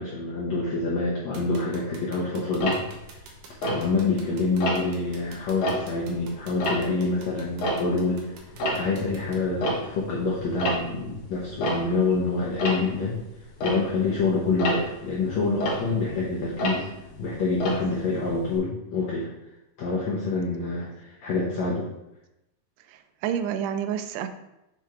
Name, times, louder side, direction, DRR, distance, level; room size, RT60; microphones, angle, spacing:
voice 1, 0.0-2.8 3.6-8.3 8.7-13.2 13.6-16.9 17.2-19.3 19.8-21.9, left 3 dB, 85° left, -5 dB, 1.5 m, -26 dB
sound 1, 1.3-9.4, right 4 dB, 70° right, 2.2 m, -46 dB
Tick-tock, 2.6-4.2 4.6-5.0 5.5-8.2 8.4-18.6, equal, 60° left, 2.4 m, -31 dB
voice 2, 22.9-24.3, right 9 dB, 90° right, 9 dB, 2.7 m, -29 dB
6.8 x 3.7 x 4.3 m, 0.90 s
omnidirectional pair, 4.6 m